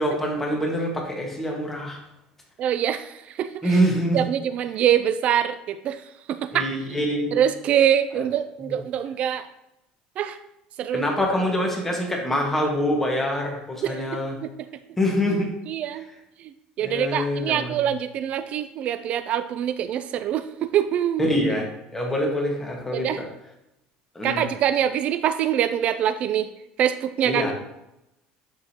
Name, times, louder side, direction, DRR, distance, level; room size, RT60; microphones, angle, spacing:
voice 1, 0.0-2.0 3.6-4.2 6.5-7.4 8.7-8.8 10.9-14.3 15.0-15.5 16.8-17.8 21.2-21.7 21.9-23.3 24.1-24.4 27.2-27.5, equal, 10° left, 0 dB, 1.5 m, -25 dB
voice 2, 2.6-3.8 4.1-6.0 6.3-6.7 7.3-9.5 10.2-10.4 10.8-11.1 13.8-14.1 14.4-14.5 15.7-16.0 16.4-16.5 16.8-21.2 22.9-23.2 24.2-26.5 26.8-27.5, right 10 dB, 50° right, 11 dB, 0.4 m, -24 dB
11.0 x 3.7 x 2.9 m, 0.87 s
cardioid pair, 130°, 3 cm